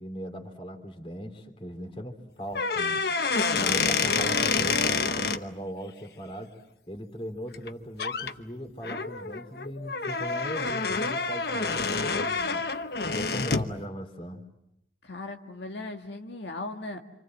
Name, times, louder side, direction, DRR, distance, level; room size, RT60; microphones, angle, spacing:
voice 1, 0.0-3.0 3.6-6.6 6.9-12.6 13.0-14.4, equal, 30° left, 6 dB, 3.1 m, -39 dB
sound 1, 2.5-5.4 7.5-7.7 8.0-8.3 8.8-13.7, left 4 dB, 60° left, 1.1 m, -28 dB
voice 2, 3.3-3.9 15.0-17.0, left 2 dB, 75° left, 3 dB, 1.8 m, -37 dB
29.0 x 27.0 x 7.5 m, 0.83 s
head